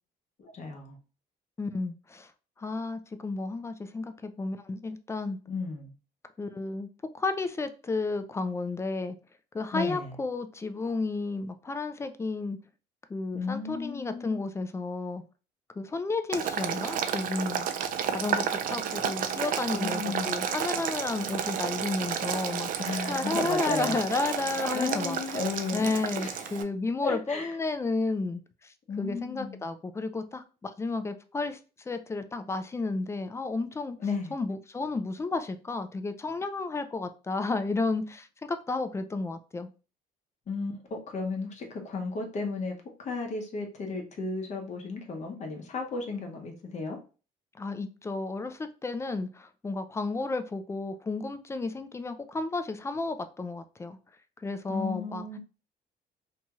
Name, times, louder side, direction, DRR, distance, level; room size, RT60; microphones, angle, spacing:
voice 1, 0.4-1.0 5.5-5.9 9.7-10.2 13.3-14.4 19.7-20.3 22.8-24.0 24.7-26.4 27.0-27.5 28.9-29.6 34.0-34.3 40.5-42.7 43.0-47.0 54.7-55.4, left 3 dB, 45° left, 3 dB, 0.9 m, -34 dB
voice 2, 1.6-2.3 2.6-5.4 6.4-6.9 7.1-9.2 9.5-12.6 13.1-15.2 15.8-17.7 18.1-25.4 25.7-31.6 31.9-34.0 34.3-38.3 38.7-39.7 47.6-54.0 54.4-55.3, left 3 dB, 15° left, 10 dB, 0.3 m, -32 dB
Boiling, 16.3-26.6, right 8 dB, 55° right, 0.4 m, -31 dB
2.7 x 2.3 x 2.9 m, 0.34 s
cardioid pair, 110°, 17 cm